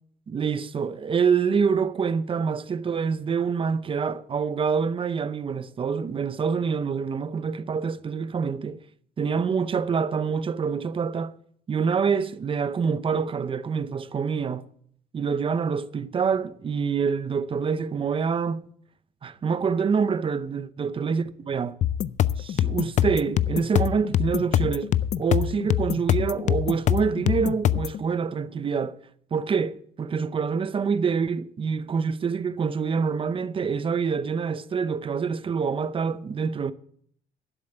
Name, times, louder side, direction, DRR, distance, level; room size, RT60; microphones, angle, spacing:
voice 1, 0.3-8.8 9.2-11.4 11.7-14.7 15.1-18.7 19.2-21.8 22.4-24.9 25.2-29.0 29.3-36.7, right 6 dB, 30° right, 0.7 m, -26 dB
sound 1, 21.8-28.0, left 10 dB, 45° left, 0.4 m, -24 dB
12.0 x 7.1 x 7.9 m
cardioid pair, 110°, 17 cm